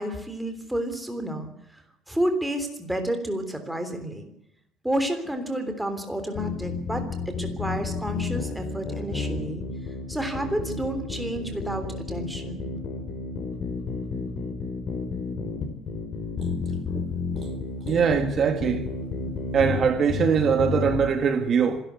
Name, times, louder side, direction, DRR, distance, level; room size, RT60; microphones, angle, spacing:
voice 1, 0.0-1.5 2.1-4.3 4.8-9.6 10.1-12.6, right 1 dB, 5° right, 3.4 m, -30 dB
sound 1, 6.3-21.1, left 4 dB, 40° left, 5.2 m, -31 dB
voice 2, 17.9-18.8 19.5-21.8, right 6 dB, 35° right, 1.8 m, -22 dB
26.0 x 12.0 x 8.3 m
cardioid pair, 155°, 0 cm